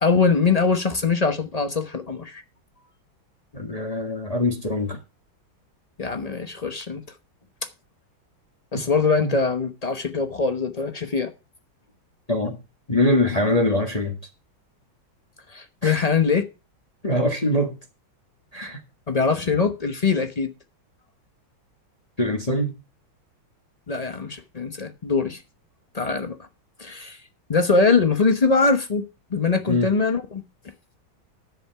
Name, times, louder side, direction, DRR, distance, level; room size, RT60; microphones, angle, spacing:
voice 1, 0.0-2.4 6.0-7.0 8.7-11.3 15.5-16.4 19.1-20.5 23.9-25.4 25.9-26.5 26.8-27.2 27.5-29.0 29.3-30.4, left 4 dB, 40° left, 0.5 m, -22 dB
voice 2, 3.5-5.0 8.7-8.8 9.2-9.4 12.3-12.6 12.9-14.2 15.8-16.0 17.0-17.7 18.5-18.8 22.2-22.7 29.7-29.9, left 1 dB, 20° left, 1.5 m, -23 dB
10.5 x 7.8 x 5.7 m
omnidirectional pair, 2.2 m